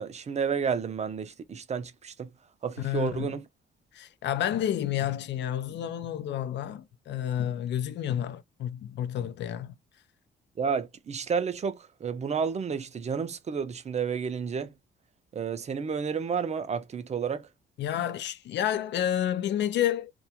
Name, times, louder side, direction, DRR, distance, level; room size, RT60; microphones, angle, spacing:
voice 1, 0.0-2.3 2.6-3.4 10.6-14.7 15.3-17.5, right 6 dB, 35° right, 0.5 m, -31 dB
voice 2, 2.8-3.4 3.9-9.7 17.8-20.1, left 11 dB, 65° left, 0.4 m, -30 dB
2.3 x 2.2 x 2.8 m
cardioid pair, 90°, 20 cm